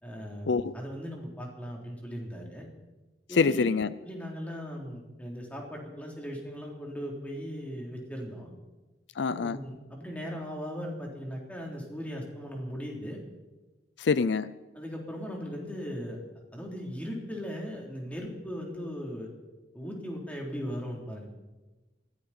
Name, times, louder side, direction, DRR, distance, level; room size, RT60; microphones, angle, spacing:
voice 1, 0.0-2.7 3.3-3.7 4.0-8.5 9.3-13.2 14.7-16.2 16.5-19.3 19.7-21.3, equal, 10° left, -1 dB, 3.4 m, -38 dB
voice 2, 3.3-3.9 9.2-9.6 14.0-14.5, left 4 dB, 75° left, 15 dB, 0.5 m, -25 dB
21.5 x 15.5 x 4.4 m, 1.1 s
head